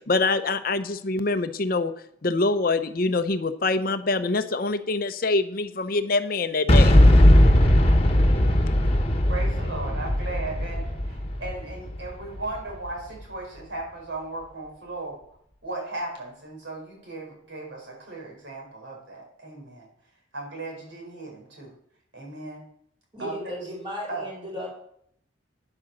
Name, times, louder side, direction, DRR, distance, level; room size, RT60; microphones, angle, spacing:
voice 1, 0.1-1.9 2.2-7.0, left 3 dB, 50° left, 10 dB, 0.7 m, -25 dB
Boom, 6.7-12.6, left 1 dB, 30° left, 1.4 m, -18 dB
voice 2, 9.3-15.2 15.6-19.9 20.3-21.7 22.1-22.6 23.2-23.7 24.1-24.3, right 2 dB, 75° right, -1 dB, 4.6 m, -36 dB
voice 3, 23.1-24.8, equal, 25° right, -3 dB, 4.0 m, -35 dB
9.8 x 8.9 x 6.5 m, 0.69 s
head